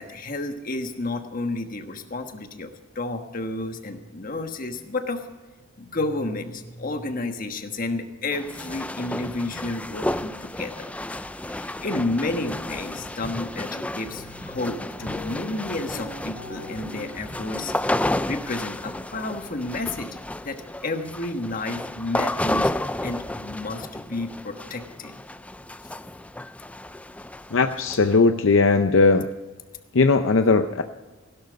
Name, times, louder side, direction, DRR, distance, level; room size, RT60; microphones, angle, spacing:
voice 1, 0.0-5.2 5.8-10.9 11.4-17.7 18.2-20.1 20.4-22.7 23.0-25.1, left 2 dB, 45° left, 7 dB, 1.3 m, -31 dB
sound 1, 8.3-28.2, left 1 dB, 5° left, 0.4 m, -32 dB
sound 2, 14.0-17.9, left 1 dB, 50° right, 6.1 m, -44 dB
voice 2, 27.5-29.3 29.9-30.8, left 3 dB, 70° left, 8 dB, 0.6 m, -18 dB
16.0 x 12.0 x 5.2 m, 1.3 s
head